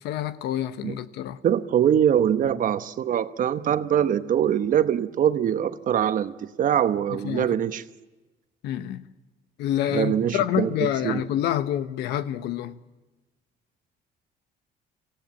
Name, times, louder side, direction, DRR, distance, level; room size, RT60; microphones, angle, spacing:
voice 1, 0.0-1.4 7.2-7.5 8.6-9.0 9.6-12.8, left 11 dB, 80° left, 1.1 m, -27 dB
voice 2, 1.4-7.8 9.9-11.2, right 9 dB, 50° right, 1.1 m, -23 dB
25.0 x 16.5 x 7.4 m
cardioid pair, 110°, 17 cm